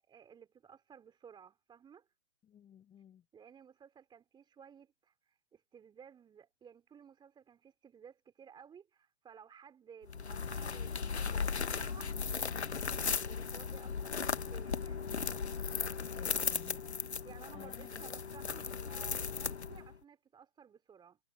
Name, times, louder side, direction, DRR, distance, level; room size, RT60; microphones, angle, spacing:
voice 1, 0.1-2.1 3.3-15.1 17.0-21.2, right 7 dB, 15° right, 4.2 m, -57 dB
voice 2, 2.4-3.2 16.1-16.8 17.5-18.5, left 9 dB, 15° left, 6.4 m, -56 dB
sound 1, 10.1-20.0, left 5 dB, 85° left, 1.3 m, -37 dB
figure-of-eight pair, 125°, 33 cm